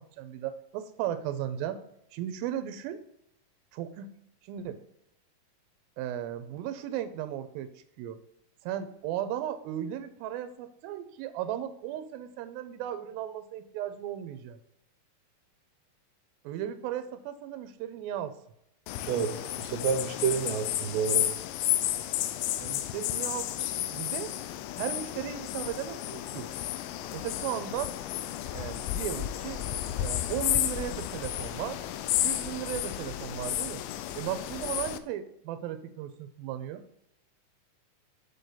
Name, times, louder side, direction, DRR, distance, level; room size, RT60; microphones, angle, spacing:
voice 1, 0.0-1.8 2.1-3.0 3.7-4.1 4.4-4.8 6.0-7.7 8.0-8.2 8.6-14.6 16.4-18.3 22.6-24.3 24.8-26.5 27.1-27.9 28.5-29.6 30.0-31.8 32.2-33.8 34.2-36.8, right 11 dB, 90° right, 11 dB, 2.4 m, -36 dB
sound 1, 18.9-35.0, left 12 dB, 85° left, 2.4 m, -32 dB
voice 2, 19.1-21.3, right 6 dB, 75° right, 3 dB, 2.3 m, -29 dB
6.7 x 6.6 x 3.9 m, 0.79 s
omnidirectional pair, 4.1 m